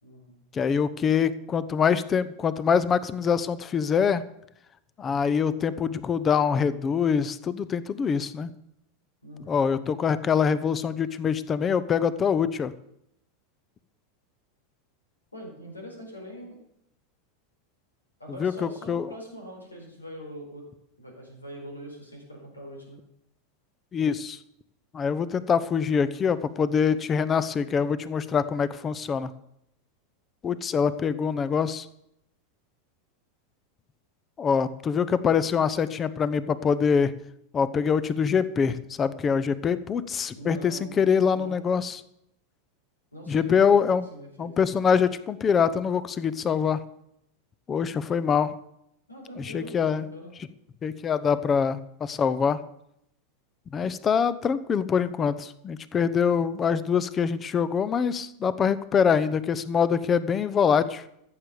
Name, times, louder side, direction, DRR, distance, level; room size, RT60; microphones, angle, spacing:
voice 1, 0.0-0.3 9.2-9.5 15.3-16.6 18.2-20.6 21.0-23.0 40.3-41.0 41.3-41.6 43.1-43.8 44.1-44.5 49.1-50.3, equal, 90° left, 1 dB, 4.6 m, -42 dB
voice 2, 0.5-4.2 5.0-8.5 9.5-12.7 18.4-19.1 23.9-24.4 24.9-29.3 30.4-31.9 34.4-37.1 37.5-42.0 43.3-44.0 44.4-46.8 47.7-48.5 49.4-50.1 50.8-52.6 53.7-61.0, left 6 dB, 25° left, 16 dB, 0.9 m, -24 dB
14.0 x 7.8 x 6.9 m, 0.77 s
figure-of-eight pair, 90°, 0 cm